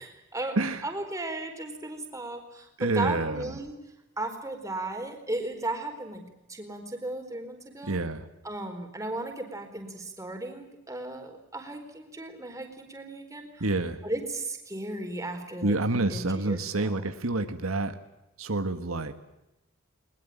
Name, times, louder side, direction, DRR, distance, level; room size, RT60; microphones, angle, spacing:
voice 1, 0.8-3.8 4.2-8.0 8.4-13.6 14.0-17.0, right 2 dB, 15° right, 4 dB, 4.3 m, -35 dB
voice 2, 2.8-3.6 7.8-8.3 13.6-14.0 15.6-18.0 18.4-19.1, right 2 dB, 85° right, 8 dB, 1.8 m, -28 dB
21.5 x 21.5 x 9.0 m, 0.94 s
head